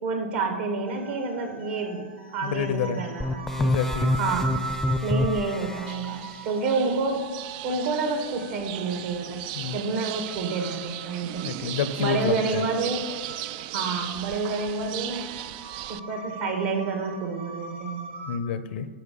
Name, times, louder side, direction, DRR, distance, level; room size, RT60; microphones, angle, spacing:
voice 1, 0.0-2.0 2.3-3.7 4.2-4.5 5.0-7.3 7.6-9.4 9.7-11.4 12.0-13.0 13.7-15.3 15.9-18.1, right 4 dB, 65° right, 3 dB, 2.3 m, -28 dB
sound 1, 0.9-18.4, right 4 dB, 90° right, 1.3 m, -42 dB
voice 2, 2.4-3.0 3.6-4.1 9.5-9.8 11.4-12.7 18.3-18.9, left 7 dB, 65° left, 13 dB, 0.7 m, -28 dB
sound 2, 3.2-5.9, left 1 dB, 5° left, 0.5 m, -26 dB
sound 3, 5.9-16.0, right 14 dB, 50° right, 0.3 m, -37 dB
8.6 x 6.1 x 6.7 m, 1.4 s
hypercardioid pair, 100°, 6 cm